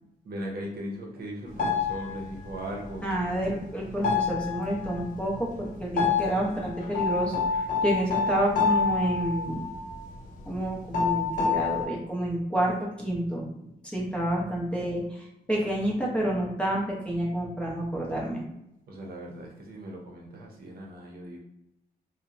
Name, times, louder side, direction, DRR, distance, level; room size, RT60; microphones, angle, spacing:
voice 1, 0.2-3.0 14.3-14.4 18.9-21.4, equal, 70° right, -1 dB, 0.7 m, -38 dB
sound 1, 1.6-2.5 2.8-3.7 4.0-5.2 6.0-10.2 10.5-10.6 10.9-11.9, left 5 dB, 55° left, 0.6 m, -28 dB
voice 2, 3.0-9.7 10.5-18.4, right 1 dB, 5° left, -4 dB, 0.6 m, -29 dB
2.7 x 2.0 x 2.4 m, 0.83 s
wide cardioid pair, 145°, 17 cm